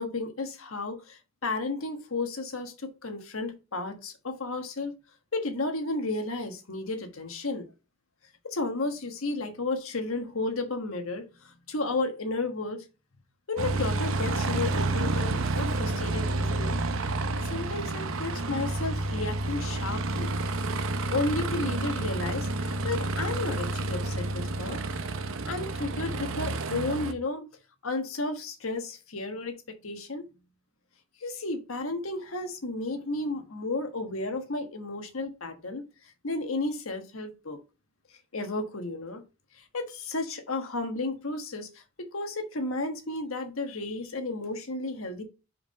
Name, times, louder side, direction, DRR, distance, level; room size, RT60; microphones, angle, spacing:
voice 1, 0.0-4.9 5.3-7.7 8.4-12.8 13.5-16.8 17.4-20.3 21.1-24.8 25.5-27.5 27.8-30.3 31.2-35.9 36.2-37.6 38.3-39.2 39.7-45.2, left 2 dB, 75° left, 1.4 m, -33 dB
Aircraft, 13.6-27.1, right 2 dB, 70° right, 0.7 m, -30 dB
5.5 x 4.7 x 5.3 m
head